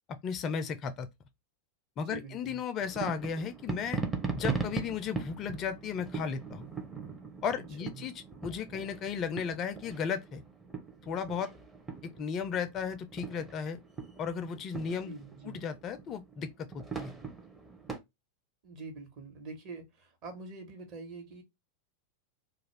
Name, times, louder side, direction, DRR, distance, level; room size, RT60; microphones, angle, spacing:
voice 1, 0.1-1.1 2.0-4.0 4.3-6.6 7.4-8.1 8.4-10.4 11.0-11.5 12.0-13.8 14.2-15.1 15.4-17.1, left 6 dB, 30° left, 0.4 m, -35 dB
voice 2, 2.1-2.6 7.8-8.0 15.0-15.6 18.6-21.4, right 3 dB, 40° right, 1.1 m, -45 dB
sound 1, 2.8-18.0, right 5 dB, 10° right, 0.6 m, -40 dB
2.4 x 2.3 x 3.2 m
figure-of-eight pair, 90°, 0 cm